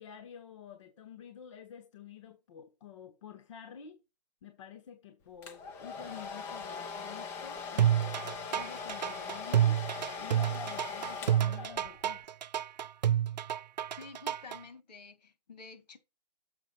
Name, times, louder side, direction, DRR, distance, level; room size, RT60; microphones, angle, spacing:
voice 1, 0.0-4.0 4.4-9.8 10.2-12.3, left 8 dB, 45° left, 1.1 m, -49 dB
Domestic sounds home sounds, 5.4-12.1, left 5 dB, 15° left, 0.5 m, -41 dB
sound 1, 7.8-14.6, right 10 dB, 85° right, 0.5 m, -29 dB
voice 2, 13.9-16.0, left 4 dB, 75° left, 2.4 m, -50 dB
7.0 x 5.5 x 4.3 m
hypercardioid pair, 160°, 21 cm